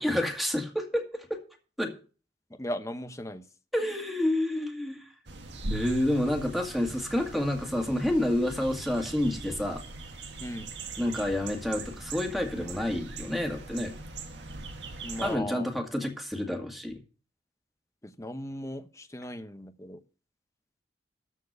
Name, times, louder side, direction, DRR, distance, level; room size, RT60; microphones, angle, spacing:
voice 1, 0.0-1.4 1.8-1.9 3.7-5.1 5.7-9.8 11.0-13.9 15.2-17.0, left 1 dB, ahead, 2.0 m, -29 dB
voice 2, 2.5-3.4 10.4-10.7 15.0-15.7 18.0-20.0, left 1 dB, 15° left, 0.9 m, -37 dB
sound 1, 5.3-15.4, right 2 dB, 85° right, 1.8 m, -40 dB
13.5 x 4.6 x 8.0 m
head